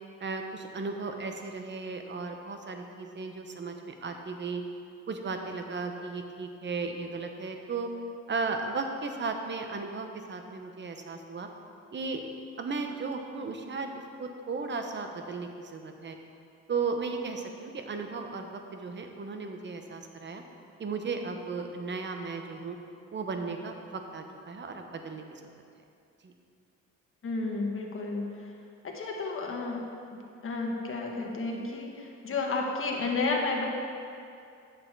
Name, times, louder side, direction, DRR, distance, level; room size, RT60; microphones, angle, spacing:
voice 1, 0.2-4.6 5.1-7.9 8.3-11.5 11.9-12.2 12.6-16.2 16.7-20.4 20.8-22.8 23.1-25.5 26.2-26.3, right 4 dB, 35° right, 5 dB, 1.0 m, -35 dB
voice 2, 27.2-28.5 28.8-29.8 30.4-33.6, left 3 dB, 45° left, 0 dB, 1.5 m, -31 dB
9.1 x 6.8 x 4.7 m, 2.6 s
cardioid pair, 90°, 30 cm